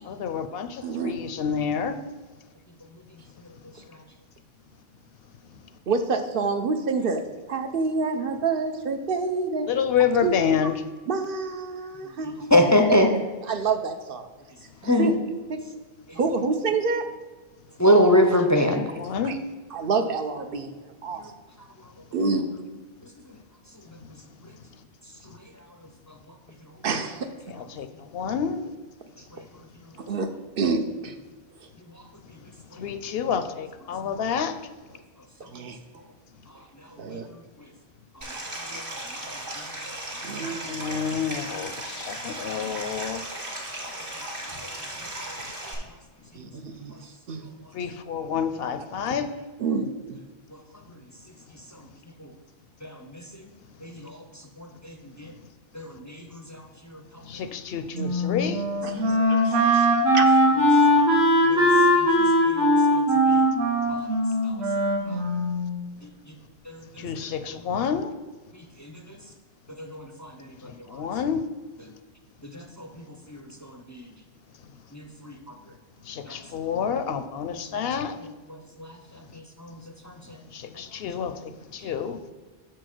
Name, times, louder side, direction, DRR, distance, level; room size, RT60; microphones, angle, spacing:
voice 1, 0.1-0.7 1.0-2.0 9.7-10.7 18.8-19.4 27.5-28.7 32.8-34.6 40.6-43.2 47.7-49.3 57.3-58.6 67.0-68.1 70.9-71.4 76.1-78.2 80.5-82.2, left 7 dB, 70° left, 11 dB, 0.8 m, -28 dB
voice 2, 0.8-1.1 5.9-7.2 7.5-9.7 10.2-10.3 11.1-12.5 13.5-14.3 14.8-15.2 15.5-15.6 16.2-17.1 19.2-19.4 19.7-20.7 21.0-21.2 22.1-22.4 26.8-27.3 30.1-31.2 35.5-35.8 37.0-37.3 38.7-38.8 40.2-40.6 46.3-46.9 47.3-47.4 49.6-50.2 58.8-59.9 60.1-60.3, right 4 dB, 60° right, 7 dB, 0.8 m, -27 dB
voice 3, 12.5-13.1 14.8-15.1 17.8-18.8 52.2-52.3 52.8-53.2 53.8-54.2 54.6-55.3 55.7-56.6 56.9-57.0 61.1-61.6 62.0-62.6 62.9-63.0 63.3-63.5 65.1-65.2 66.7-67.1 68.8-68.9 69.8-70.5 70.9-71.0 72.5-72.9 73.3-74.1 74.9-75.4 76.3-76.4 78.8-78.9 79.6-79.8 80.0-80.1, left 1 dB, 20° left, 4 dB, 0.5 m, -24 dB
Stream, 38.2-45.7, right 1 dB, 45° right, 1.9 m, -36 dB
Wind instrument woodwind instrument, 58.0-65.8, equal, 85° right, 1.7 m, -20 dB
6.5 x 4.6 x 6.0 m, 1.3 s
omnidirectional pair, 1.1 m